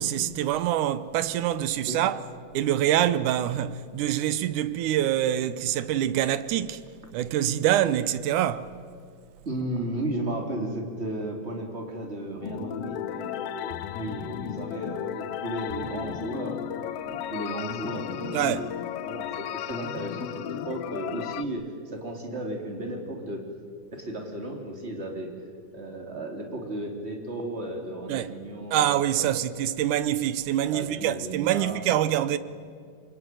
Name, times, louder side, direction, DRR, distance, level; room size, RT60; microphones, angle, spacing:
voice 1, 0.0-2.2 2.5-6.8 7.1-8.7 18.3-18.6 28.1-28.3 28.7-32.4, right 12 dB, 75° right, 2.3 m, -25 dB
voice 2, 9.4-16.7 17.0-23.4 23.9-25.3 25.7-29.4 29.6-29.8 30.7-31.8, right 1 dB, 20° right, 3.3 m, -34 dB
sound 1, 12.4-21.5, left 11 dB, 85° left, 1.3 m, -34 dB
26.5 x 23.0 x 9.3 m
omnidirectional pair, 3.8 m